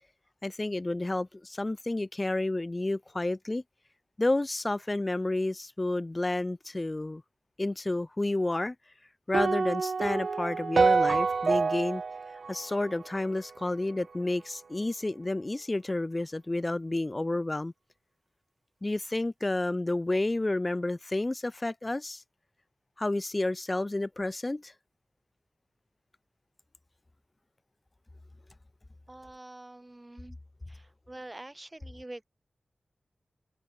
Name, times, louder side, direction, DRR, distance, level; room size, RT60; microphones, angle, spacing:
voice 1, 0.4-3.6 4.2-7.2 7.6-8.8 9.3-12.0 12.5-17.7 18.8-22.2 23.0-24.7, left 2 dB, 25° left, 3.7 m, -30 dB
sound 1, 9.3-13.6, right 4 dB, 60° right, 1.1 m, -27 dB
voice 2, 29.1-30.4 30.7-32.2, right 2 dB, 20° right, 8.0 m, -46 dB
wide cardioid pair, 110°, 0 cm